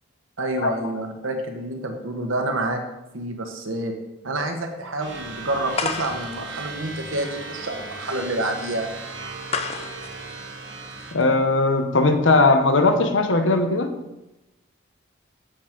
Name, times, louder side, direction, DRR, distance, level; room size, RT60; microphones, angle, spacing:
voice 1, 0.4-2.8 3.1-3.9 4.2-8.9, right 1 dB, 85° right, 4 dB, 1.2 m, -28 dB
sound 1, 5.0-11.1, right 3 dB, 65° right, 1.3 m, -36 dB
sound 2, 5.7-11.4, left 5 dB, 30° left, 0.4 m, -33 dB
voice 2, 11.1-13.9, left 3 dB, 70° left, 7 dB, 0.9 m, -19 dB
7.2 x 6.0 x 5.1 m, 0.97 s
head